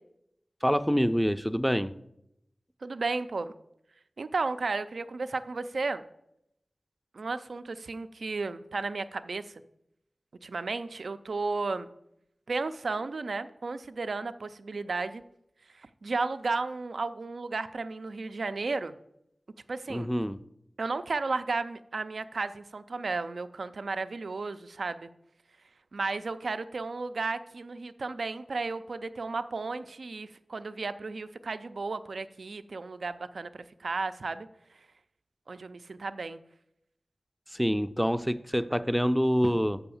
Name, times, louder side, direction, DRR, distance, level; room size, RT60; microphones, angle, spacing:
voice 1, 0.6-1.9 19.9-20.4 37.5-39.8, equal, ahead, 12 dB, 0.4 m, -26 dB
voice 2, 2.8-3.5 4.2-6.0 7.1-9.5 10.4-11.9 12.5-15.2 15.7-19.0 19.7-20.1 20.8-25.1 25.9-34.5 35.5-36.4, right 3 dB, 80° right, 12 dB, 0.4 m, -33 dB
6.8 x 5.6 x 7.0 m, 0.80 s
wide cardioid pair, 50°, 0 cm